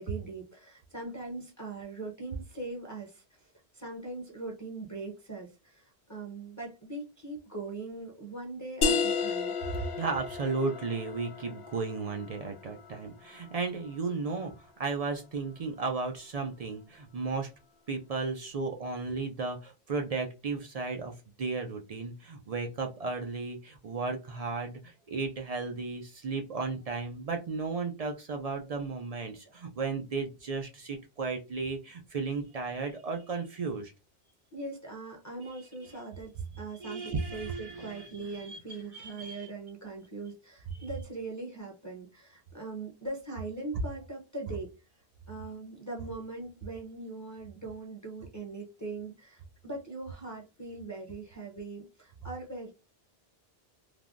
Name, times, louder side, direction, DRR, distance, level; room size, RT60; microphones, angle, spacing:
voice 1, 0.0-9.5 34.5-44.7 45.3-52.7, right 3 dB, 20° left, -1 dB, 0.7 m, -41 dB
sound 1, 8.8-14.2, left 5 dB, 75° left, 0.8 m, -33 dB
voice 2, 9.8-17.5 17.9-33.9 36.8-38.6 38.9-39.5, right 4 dB, 55° right, 3 dB, 0.4 m, -34 dB
3.3 x 2.2 x 2.4 m, 0.28 s
omnidirectional pair, 1.1 m